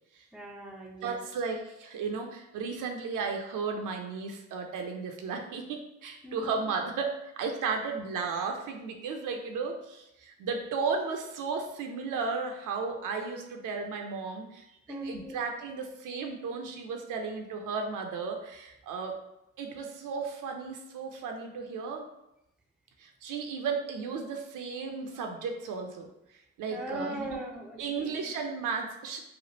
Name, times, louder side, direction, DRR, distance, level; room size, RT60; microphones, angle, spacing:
voice 1, 0.3-1.2 6.2-6.6 14.7-15.4 26.7-28.2, right 1 dB, ahead, 2 dB, 0.5 m, -40 dB
voice 2, 1.0-19.2 19.6-22.1 23.0-27.4 27.8-29.2, right 5 dB, 55° right, 3 dB, 0.6 m, -34 dB
3.1 x 2.4 x 2.8 m, 0.85 s
hypercardioid pair, 45°, 39 cm